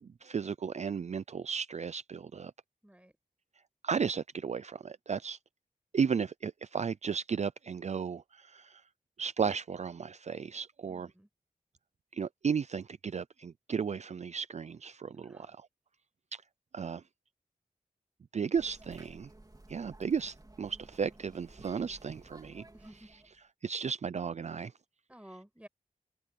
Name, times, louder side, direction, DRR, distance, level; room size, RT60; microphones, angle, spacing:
voice 1, 0.0-2.5 3.8-5.4 5.9-8.8 9.2-11.1 12.1-15.7 16.3-16.4 16.7-17.0 18.3-19.3 19.7-22.6 23.6-24.7, right 6 dB, 50° right, 0.4 m, -34 dB
voice 2, 2.8-3.2 10.9-11.3 15.1-15.6 18.5-18.6 18.9-19.0 22.7-23.1 25.1-25.7, right 1 dB, 10° right, 6.2 m, -54 dB
sound 1, 18.5-23.4, right 2 dB, 25° right, 4.0 m, -55 dB
wide cardioid pair, 75°, 15 cm